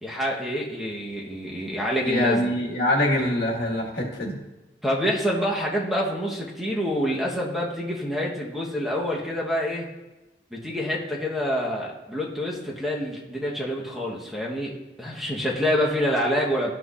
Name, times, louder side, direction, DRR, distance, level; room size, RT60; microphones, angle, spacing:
voice 1, 0.0-2.5 4.8-9.9 10.5-14.7 15.0-16.7, equal, ahead, -3 dB, 1.0 m, -27 dB
voice 2, 2.0-4.4, left 1 dB, 65° left, -2 dB, 1.5 m, -24 dB
13.0 x 6.0 x 2.4 m, 1.0 s
head